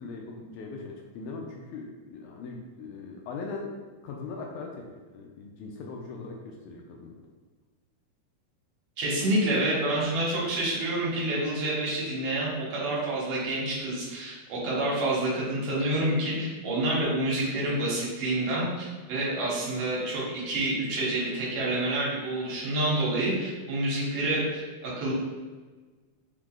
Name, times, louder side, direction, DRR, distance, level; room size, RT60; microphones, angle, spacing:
voice 1, 0.0-3.7 4.0-7.1, left 4 dB, 80° left, 0 dB, 1.9 m, -40 dB
voice 2, 9.0-25.1, right 1 dB, 70° right, -6 dB, 2.6 m, -28 dB
5.3 x 3.7 x 2.4 m, 1.3 s
omnidirectional pair, 3.6 m